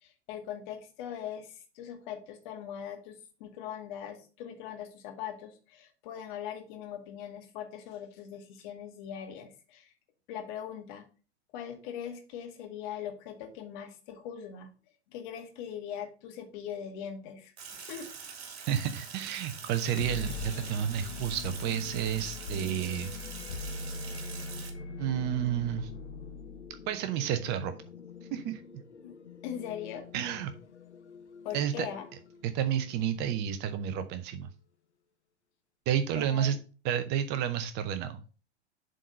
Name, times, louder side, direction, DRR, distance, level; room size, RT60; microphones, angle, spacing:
voice 1, 0.0-9.9 10.3-11.0 11.5-14.7 15.1-18.1 29.0-29.1 29.4-30.1 31.4-32.1 36.2-36.6, left 9 dB, 45° left, 5 dB, 1.8 m, -41 dB
Sink (filling or washing), 17.6-24.7, right 6 dB, 60° right, 1.9 m, -44 dB
voice 2, 18.7-23.1 25.0-25.9 26.9-27.7 28.3-28.6 30.1-30.5 31.5-31.9 32.4-34.5 35.9-36.6 36.8-38.2, right 9 dB, 30° right, 11 dB, 0.7 m, -30 dB
sound 1, 19.7-33.5, left 3 dB, 80° left, 0.8 m, -43 dB
7.4 x 4.0 x 5.5 m, 0.36 s
figure-of-eight pair, 95°, 34 cm